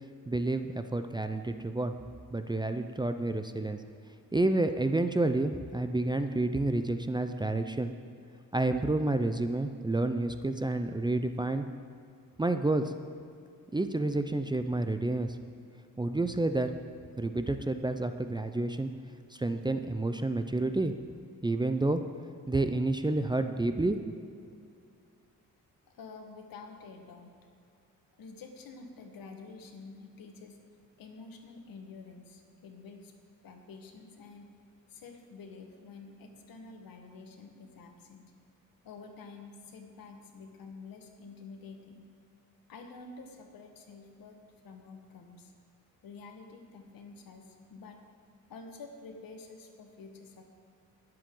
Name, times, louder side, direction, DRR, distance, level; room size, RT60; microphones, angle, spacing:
voice 1, 0.3-1.9 2.3-3.8 4.3-7.9 8.5-11.6 12.4-12.9 13.7-15.4 16.0-16.7 17.2-18.9 19.3-20.9 21.4-22.0 22.5-24.2, right 2 dB, 15° right, 8 dB, 0.6 m, -29 dB
voice 2, 25.9-27.3 28.2-30.6 31.0-33.1 33.4-34.5 34.9-38.3 38.8-42.1 42.7-44.4 44.6-45.5 46.0-48.0 48.5-50.5, left 4 dB, 75° left, 4 dB, 1.6 m, -49 dB
21.0 x 7.7 x 3.8 m, 2.4 s
cardioid pair, 75°, 35 cm